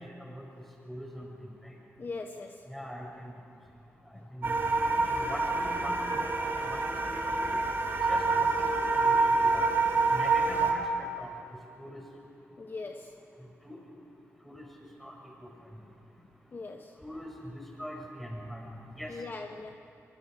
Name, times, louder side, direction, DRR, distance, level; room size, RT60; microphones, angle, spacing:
voice 1, 0.0-1.8 2.7-3.3 4.1-4.6 5.0-7.0 7.3-7.6 8.1-9.7 10.1-11.3 11.8-12.0 13.3-13.8 14.4-14.7 15.0-15.8 17.0-19.2, equal, 5° left, -1 dB, 7.0 m, -43 dB
voice 2, 2.0-2.6 4.1-4.2 12.6-13.1 16.5-16.9 19.1-19.7, left 3 dB, 40° left, 4 dB, 1.3 m, -40 dB
sound 1, 4.4-10.7, right 3 dB, 45° right, 3.9 m, -27 dB
25.0 x 24.5 x 6.6 m, 2.9 s
cardioid pair, 95°, 5 cm